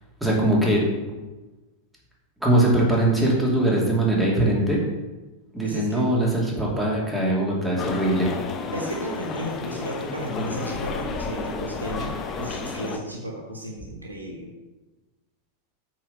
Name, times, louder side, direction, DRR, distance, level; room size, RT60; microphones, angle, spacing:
voice 1, 0.2-0.8 2.4-4.8 5.5-8.3, right 1 dB, 5° right, -4 dB, 2.7 m, -21 dB
voice 2, 5.6-6.1 8.7-14.5, right 1 dB, 80° right, 0 dB, 1.4 m, -33 dB
sound 1, 7.8-13.0, left 4 dB, 30° left, 1.0 m, -32 dB
8.8 x 4.8 x 5.7 m, 1.1 s
figure-of-eight pair, 90°, 0 cm